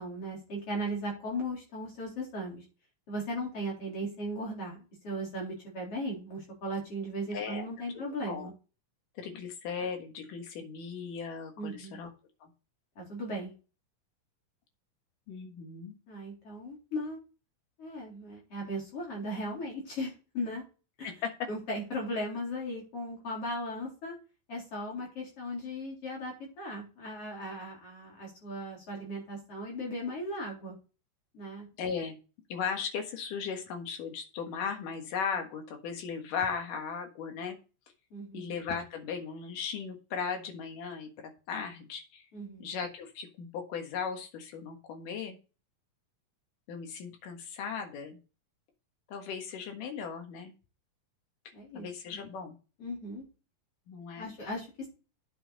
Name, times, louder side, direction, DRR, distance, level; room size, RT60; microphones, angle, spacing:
voice 1, 0.0-2.6 3.1-8.5 11.6-12.0 13.0-13.6 16.1-17.2 17.8-20.6 21.0-21.1 21.5-24.1 24.5-30.8 31.3-31.7 38.1-38.5 42.3-42.7 51.5-51.9 52.8-53.2 54.2-54.9, equal, 45° left, -3 dB, 4.7 m, -37 dB
voice 2, 7.3-7.7 8.3-8.5 9.2-12.1 12.4-12.5 15.3-16.0 21.0-21.1 31.8-32.2 32.5-37.6 38.3-41.1 41.5-42.2 42.6-45.4 46.7-48.2 49.1-50.5 51.7-52.6 53.9-54.4, left 6 dB, 75° left, 4 dB, 3.2 m, -37 dB
9.9 x 7.2 x 4.1 m, 0.33 s
omnidirectional pair, 3.9 m